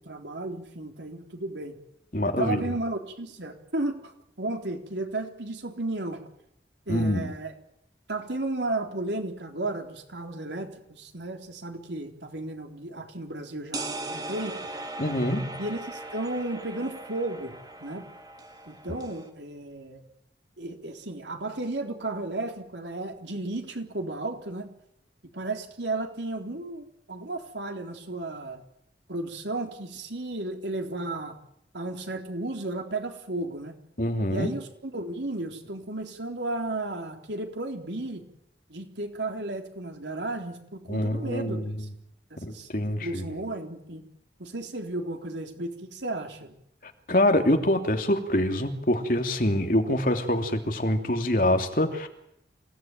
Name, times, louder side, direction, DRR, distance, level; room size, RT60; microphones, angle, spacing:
voice 1, 0.0-1.8 2.3-4.1 4.4-6.2 6.9-7.5 8.1-14.6 15.6-18.1 18.7-20.0 20.6-24.7 25.3-28.6 29.1-31.4 31.7-33.7 34.3-38.3 38.7-41.9 42.3-42.7 43.0-44.0 44.4-46.5, right 2 dB, 90° right, 4 dB, 3.8 m, -34 dB
voice 2, 2.1-2.6 6.9-7.3 15.0-15.6 34.0-34.5 40.9-41.6 42.4-43.3 46.8-52.1, left 1 dB, 50° left, 4 dB, 3.0 m, -25 dB
sound 1, 13.7-19.3, right 2 dB, 25° right, 2.4 m, -39 dB
27.5 x 17.5 x 9.3 m, 0.78 s
head